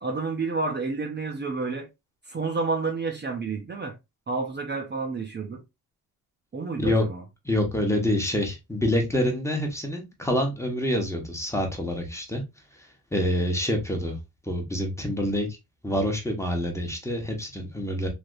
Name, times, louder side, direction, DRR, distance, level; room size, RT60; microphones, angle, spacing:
voice 1, 0.0-1.9 2.2-3.9 4.3-5.6 6.5-7.2, right 4 dB, 30° right, 0.7 m, -30 dB
voice 2, 7.4-12.4 12.8-14.2 14.4-15.5 15.8-18.1, left 1 dB, 10° left, 1.1 m, -26 dB
3.4 x 2.7 x 2.5 m
cardioid pair, 85°, 36 cm